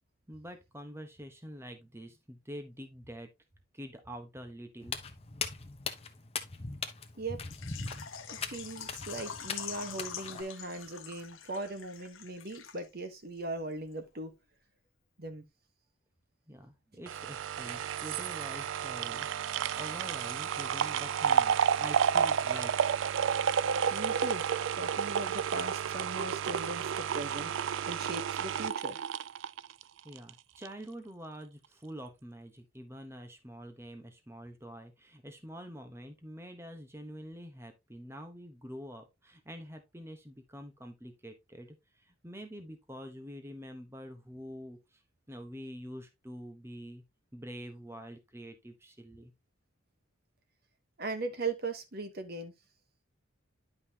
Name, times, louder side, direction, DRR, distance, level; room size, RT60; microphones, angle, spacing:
voice 1, 0.3-3.3 3.7-5.0 16.5-19.5 19.7-22.7 30.0-45.0 45.3-47.0 47.3-49.3, equal, 10° right, 1.1 m, -46 dB
Walk footsteps, 4.8-10.4, left 5 dB, 30° left, 0.9 m, -40 dB
Water / Liquid, 7.5-13.1 13.4-13.5 13.9-14.0, left 8 dB, 70° left, 1.2 m, -45 dB
voice 2, 8.3-14.3 15.2-15.4 23.9-24.5 24.8-29.0 51.0-52.5, right 2 dB, 45° right, 1.2 m, -39 dB
sound 1, 17.1-30.3 30.7-30.8, right 8 dB, 65° right, 0.4 m, -31 dB
10.5 x 5.5 x 2.9 m
head